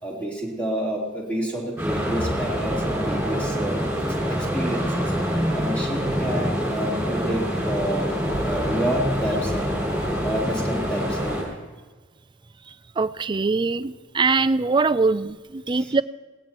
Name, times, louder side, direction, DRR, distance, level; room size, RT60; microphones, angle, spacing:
voice 1, 0.0-3.8 4.3-5.1 5.5-8.2 8.5-9.7 10.2-11.4 15.7-15.9, equal, 10° left, -4 dB, 3.6 m, -29 dB
sound 1, 1.8-11.4, equal, 5° right, 6.3 m, -25 dB
voice 2, 13.0-16.0, right 4 dB, 25° right, 14 dB, 0.4 m, -22 dB
20.5 x 18.0 x 3.0 m, 1.3 s
head